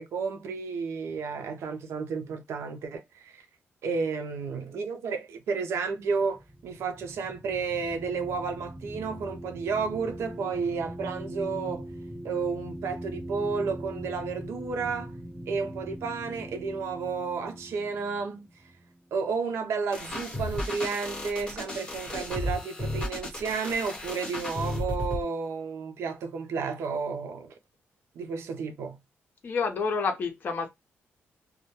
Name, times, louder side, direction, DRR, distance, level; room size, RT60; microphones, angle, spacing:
voice 1, 0.0-3.4 3.8-11.9 12.2-15.1 15.5-18.5 19.1-27.5 28.2-29.0, right 5 dB, 75° right, 0.5 m, -32 dB
sound 1, 5.8-19.5, right 1 dB, 15° right, 0.9 m, -41 dB
sound 2, 19.9-25.2, left 1 dB, 20° left, 1.0 m, -34 dB
voice 2, 29.4-30.7, left 5 dB, 45° left, 0.6 m, -28 dB
2.1 x 2.1 x 2.8 m
wide cardioid pair, 160°, 4 cm